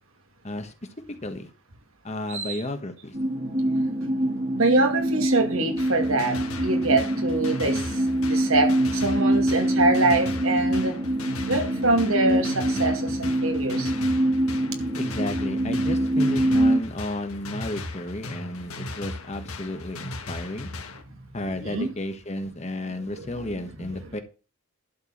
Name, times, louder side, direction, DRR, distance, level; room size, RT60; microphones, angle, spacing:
voice 1, 0.4-0.7 1.1-1.5 2.0-3.2 15.0-20.7 21.3-24.2, left 1 dB, 30° left, 7 dB, 1.2 m, -33 dB
voice 2, 2.3-2.6 4.5-11.0 11.5-13.9 21.5-21.9 23.1-23.7, right 2 dB, 75° right, 4 dB, 2.4 m, -25 dB
sound 1, 3.1-16.8, right 1 dB, 30° right, 1.6 m, -25 dB
sound 2, 5.8-21.0, left 2 dB, 85° left, 1.8 m, -37 dB
11.5 x 4.6 x 7.2 m, 0.35 s
head